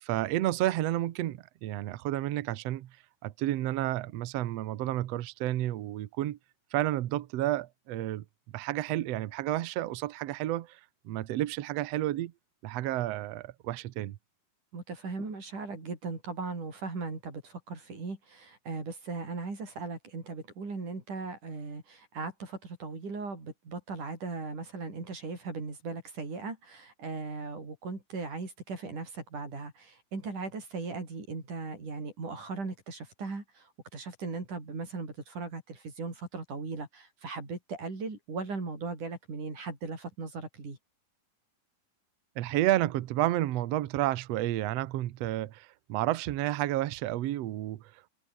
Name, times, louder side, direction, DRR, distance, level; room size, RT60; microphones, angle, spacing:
voice 1, 0.0-2.9 3.2-6.4 6.7-8.2 8.5-12.3 12.6-14.2 42.4-48.1, right 14 dB, 80° right, 1.4 m, -31 dB
voice 2, 14.7-33.7 33.9-40.8, right 4 dB, 55° right, 8.5 m, -38 dB
omnidirectional pair, 4.2 m